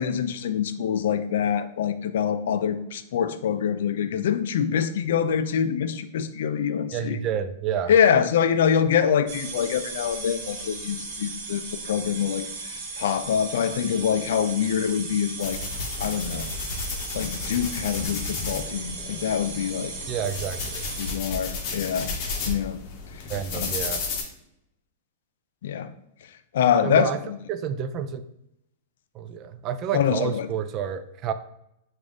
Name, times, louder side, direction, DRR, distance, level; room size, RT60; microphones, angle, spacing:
voice 1, 0.0-7.2 7.9-12.5 13.0-15.6 16.0-16.5 17.1-19.9 21.0-22.1 22.5-22.8 23.5-23.7 25.6-25.9 26.5-27.4 29.9-30.5, left 8 dB, 70° left, 11 dB, 0.3 m, -25 dB
voice 2, 6.9-7.9 20.1-20.9 23.3-24.0 26.8-27.2 27.5-28.2 29.1-31.3, right 8 dB, 35° right, 10 dB, 0.3 m, -29 dB
sound 1, 9.3-21.2, right 4 dB, 55° right, 0.8 m, -37 dB
sound 2, 15.4-24.2, left 4 dB, 40° left, 0.8 m, -33 dB
3.4 x 2.5 x 3.6 m, 0.81 s
hypercardioid pair, 135°, 0 cm